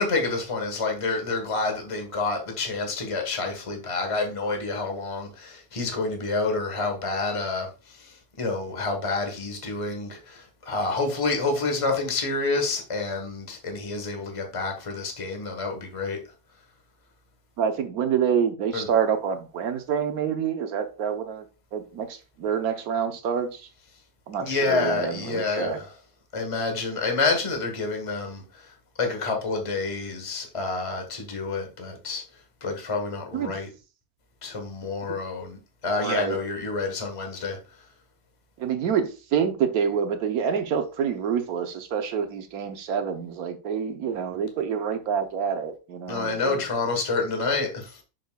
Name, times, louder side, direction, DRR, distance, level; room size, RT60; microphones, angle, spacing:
voice 1, 0.0-7.7 8.0-8.1 8.4-16.2 18.7-18.9 24.4-25.9 26.3-28.4 29.0-32.2 32.6-33.7 34.4-37.6 46.1-48.0, left 3 dB, 25° left, 1.2 m, -28 dB
voice 2, 17.6-21.5 21.7-23.7 24.3-25.8 33.3-33.5 36.0-36.4 38.6-46.6, right 7 dB, 85° right, 1.4 m, -27 dB
6.7 x 6.4 x 2.3 m
omnidirectional pair, 1.5 m